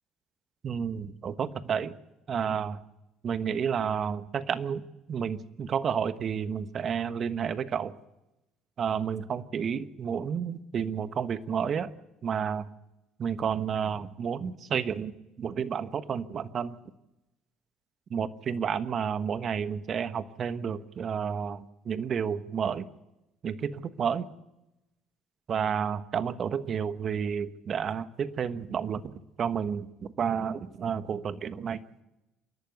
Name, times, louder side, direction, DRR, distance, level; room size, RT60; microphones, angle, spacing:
voice 1, 0.6-1.9 2.3-2.8 3.2-4.8 5.1-7.9 8.8-11.9 12.2-12.7 13.2-16.7 18.1-22.9 23.4-24.2 25.5-29.9 30.2-31.8, right 7 dB, 50° right, 12 dB, 1.2 m, -31 dB
27.5 x 11.5 x 8.2 m, 0.95 s
hypercardioid pair, 60°, 0 cm